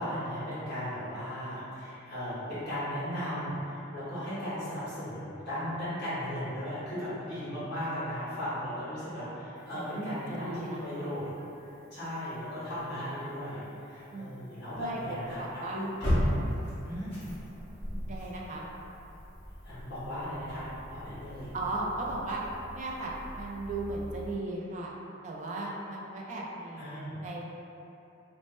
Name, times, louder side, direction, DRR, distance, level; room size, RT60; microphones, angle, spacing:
voice 1, 0.0-11.3 11.9-15.9 16.8-17.2 19.6-21.5 26.8-27.2, equal, 55° left, -13 dB, 1.0 m, -36 dB
sound 1, 9.6-24.3, equal, 10° left, 1.1 m, -38 dB
voice 2, 9.7-11.1 12.4-12.5 14.1-14.3 14.8-15.0 15.4-15.8 18.1-18.7 21.5-22.4 22.7-25.0 25.2-26.9 27.2-27.4, right 2 dB, 35° right, -3 dB, 0.4 m, -36 dB
3.0 x 2.1 x 3.0 m, 2.9 s
head